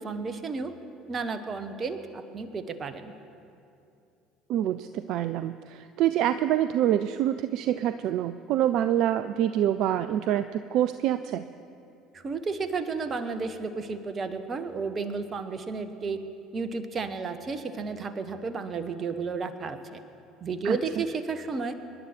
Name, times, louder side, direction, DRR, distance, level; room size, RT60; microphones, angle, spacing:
voice 1, 0.0-0.7 1.1-3.1 12.1-16.2 16.5-20.0 20.4-21.8, right 4 dB, 30° right, 11 dB, 1.2 m, -32 dB
voice 2, 4.5-11.4 20.6-20.8, right 11 dB, 55° right, 12 dB, 0.4 m, -26 dB
27.0 x 11.0 x 4.5 m, 2.6 s
figure-of-eight pair, 60°, 0 cm